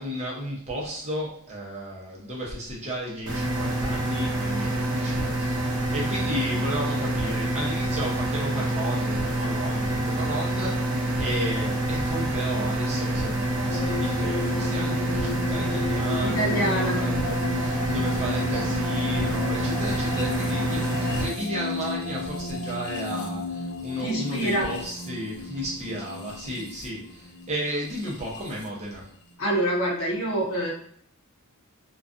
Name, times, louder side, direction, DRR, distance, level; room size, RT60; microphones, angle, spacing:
voice 1, 0.0-29.1, equal, 30° right, -3 dB, 0.6 m, -33 dB
sound 1, 3.3-21.2, right 1 dB, 80° right, 0.7 m, -27 dB
sound 2, 13.7-28.7, left 4 dB, 50° left, 0.4 m, -34 dB
voice 2, 16.2-17.0 24.0-24.7 29.4-30.7, right 1 dB, 65° left, -3 dB, 0.8 m, -26 dB
2.4 x 2.2 x 2.4 m, 0.64 s
head